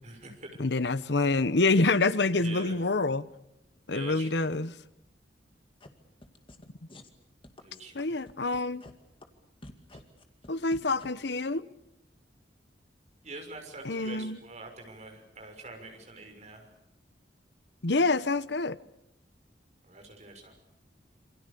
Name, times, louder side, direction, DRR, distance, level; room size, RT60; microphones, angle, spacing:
voice 1, 0.0-0.6 2.4-2.7 3.9-4.5 7.6-8.1 13.2-16.7 19.8-20.5, right 2 dB, 40° right, 6.4 m, -45 dB
voice 2, 0.6-3.3 3.9-4.8 7.9-8.8 10.5-11.7 13.8-14.4 17.8-18.8, left 3 dB, 70° left, 1.0 m, -27 dB
sound 1, 5.8-5.9 6.2-6.6 6.9-7.1 7.4-8.9 9.2-9.3 9.6-11.1, left 1 dB, 30° left, 2.2 m, -48 dB
28.0 x 25.5 x 7.0 m
head